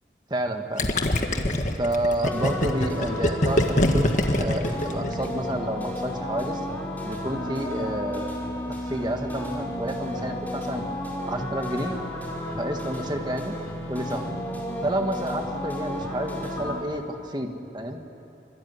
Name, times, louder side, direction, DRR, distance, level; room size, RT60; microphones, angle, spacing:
voice 1, 0.3-0.9 1.8-4.1 4.4-6.6 7.0-8.3 8.7-10.8 11.3-12.0 12.5-13.5 13.9-14.3 14.8-18.0, right 1 dB, 25° right, 4 dB, 1.8 m, -30 dB
Gurgling, 0.8-5.5, left 1 dB, 45° left, 1.7 m, -24 dB
sound 1, 2.2-16.8, left 1 dB, 10° left, 4.3 m, -33 dB
25.0 x 22.5 x 9.7 m, 3.0 s
head